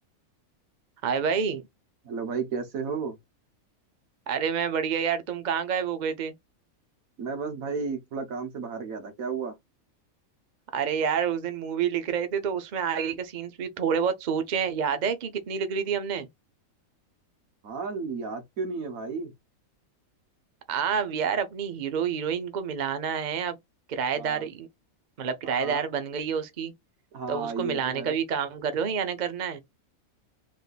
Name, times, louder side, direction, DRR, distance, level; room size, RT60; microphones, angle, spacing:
voice 1, 1.0-1.6 4.3-6.3 10.7-16.3 20.7-23.6 23.9-24.7 25.2-26.7 27.3-29.6, right 7 dB, 45° right, 0.6 m, -28 dB
voice 2, 2.0-3.2 7.2-9.6 17.6-19.3 24.1-24.5 25.4-25.8 27.1-28.2, right 5 dB, 75° right, 1.6 m, -33 dB
3.6 x 2.5 x 4.0 m
omnidirectional pair, 1.5 m